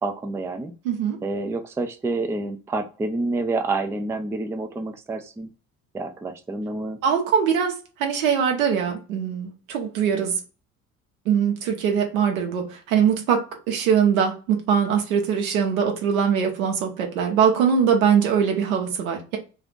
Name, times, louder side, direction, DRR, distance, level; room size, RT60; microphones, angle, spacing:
voice 1, 0.0-0.7 1.2-5.5 5.9-7.0, right 3 dB, 5° right, 0.4 m, -28 dB
voice 2, 0.8-1.2 7.0-10.4 11.3-13.4 13.7-19.4, right 7 dB, 80° right, 0.9 m, -22 dB
2.5 x 2.4 x 3.6 m
hypercardioid pair, 65°, 41 cm